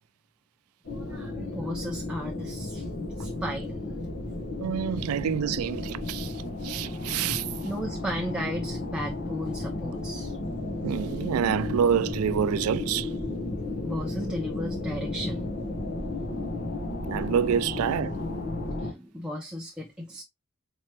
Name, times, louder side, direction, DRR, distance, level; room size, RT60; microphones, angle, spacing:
sound 1, 0.8-18.9, left 2 dB, 45° left, 0.9 m, -33 dB
voice 1, 0.9-2.9 3.2-4.1 5.0-5.1 7.6-10.4 13.8-15.5 18.8-20.2, equal, 5° right, 0.4 m, -35 dB
voice 2, 4.6-6.3 6.6-7.4 10.8-13.1 17.1-18.2, right 8 dB, 80° right, 0.3 m, -27 dB
4.4 x 2.9 x 3.1 m
head